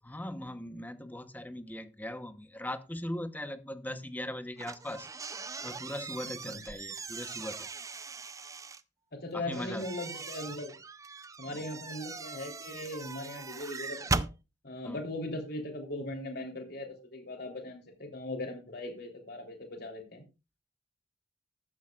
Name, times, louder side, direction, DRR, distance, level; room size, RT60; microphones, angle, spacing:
voice 1, 0.0-5.1 5.6-7.7 9.3-9.9 11.4-11.7 14.8-15.0, left 1 dB, 10° left, 0.9 m, -40 dB
sound 1, 4.6-8.8 9.5-14.3, right 3 dB, 20° right, 0.5 m, -39 dB
voice 2, 9.1-10.8 11.4-14.3 14.6-20.2, left 1 dB, 60° left, 3.4 m, -39 dB
13.5 x 13.0 x 2.4 m
head